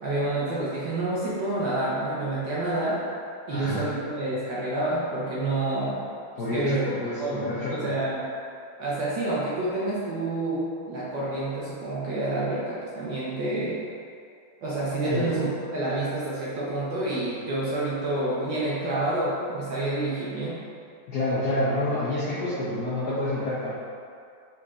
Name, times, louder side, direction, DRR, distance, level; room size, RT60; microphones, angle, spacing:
voice 1, 0.0-3.0 3.5-6.1 6.5-6.8 7.2-8.3 8.8-13.8 14.6-20.5, right 2 dB, 65° right, -8 dB, 1.4 m, -28 dB
voice 2, 3.5-3.9 6.4-7.9 15.1-15.3 21.1-23.7, left 1 dB, 65° left, -10 dB, 1.0 m, -28 dB
4.9 x 4.2 x 2.4 m, 2.4 s
omnidirectional pair, 2.4 m